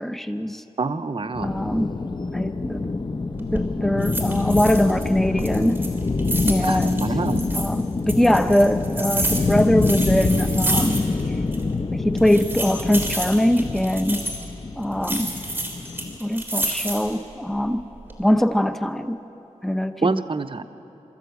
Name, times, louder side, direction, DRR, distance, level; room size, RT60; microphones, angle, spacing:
voice 1, 0.0-0.6 1.4-1.9 2.3-3.0 3.4-5.8 6.5-7.1 7.5-11.0 11.9-14.2 14.8-15.3 16.2-17.8 18.2-19.2 19.6-20.1, left 1 dB, ahead, 9 dB, 0.8 m, -22 dB
voice 2, 0.8-1.5 6.6-7.5 20.0-20.6, right 3 dB, 45° right, 9 dB, 0.8 m, -26 dB
sound 1, 1.3-16.2, left 3 dB, 40° left, 0.8 m, -26 dB
sound 2, 3.3-3.7 4.0-5.1 5.4-7.7 8.1-11.3 11.5-11.6 12.2-14.4 15.0-17.2 17.7-18.2, right 1 dB, 15° right, 3.9 m, -29 dB
23.5 x 14.0 x 8.1 m, 2.9 s
cardioid pair, 55°, 12 cm